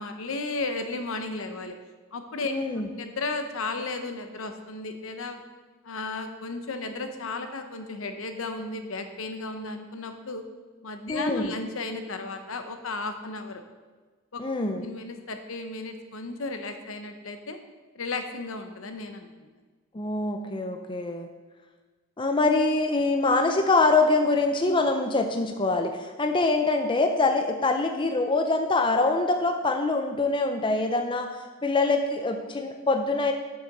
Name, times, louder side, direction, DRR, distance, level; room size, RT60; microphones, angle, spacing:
voice 1, 0.0-1.8 2.1-2.5 3.0-5.4 5.8-10.4 10.8-13.6 14.3-14.4 14.8-17.6 17.9-19.3, left 3 dB, 70° left, 7 dB, 0.9 m, -34 dB
voice 2, 2.4-2.9 11.1-11.5 14.4-14.8 19.9-21.3 22.2-33.3, left 3 dB, 25° left, 5 dB, 0.5 m, -24 dB
6.7 x 6.6 x 6.0 m, 1.4 s
head